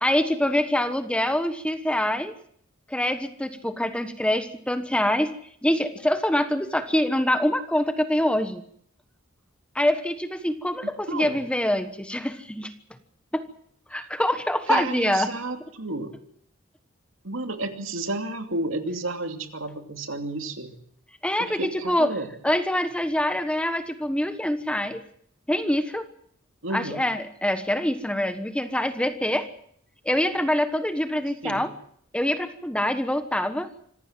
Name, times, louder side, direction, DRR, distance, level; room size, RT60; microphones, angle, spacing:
voice 1, 0.0-2.3 2.9-5.3 5.6-8.6 9.7-12.7 13.3-13.4 13.9-15.3 21.2-22.1 22.4-25.0 25.5-26.1 26.7-29.5 30.0-31.7 32.1-33.7, left 1 dB, 5° left, 10 dB, 1.2 m, -25 dB
voice 2, 14.7-16.1 17.2-20.7 21.4-22.3 26.6-27.0 31.4-31.7, right 2 dB, 70° right, 6 dB, 2.8 m, -31 dB
25.5 x 15.5 x 7.5 m, 0.65 s
head